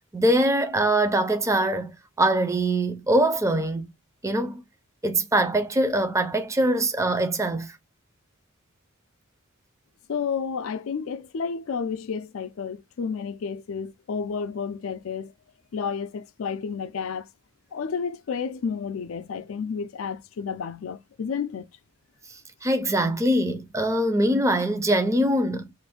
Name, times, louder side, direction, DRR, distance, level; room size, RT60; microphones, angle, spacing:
voice 1, 0.1-3.9 4.2-4.6 5.0-7.7 22.6-25.7, right 1 dB, 15° right, 0.5 m, -23 dB
voice 2, 10.1-15.3 15.7-17.3 17.7-21.7, left 6 dB, 75° left, 0.4 m, -31 dB
2.6 x 2.5 x 3.5 m
head